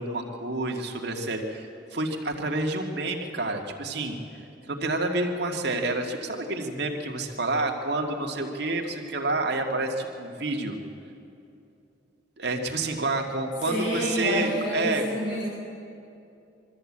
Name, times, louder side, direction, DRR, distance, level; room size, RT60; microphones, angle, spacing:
voice 1, 0.0-4.2 4.7-10.8 12.4-15.0, right 2 dB, 65° right, 2 dB, 1.9 m, -29 dB
voice 2, 13.6-15.5, equal, 70° left, -4 dB, 3.9 m, -28 dB
23.0 x 13.5 x 8.6 m, 2.7 s
head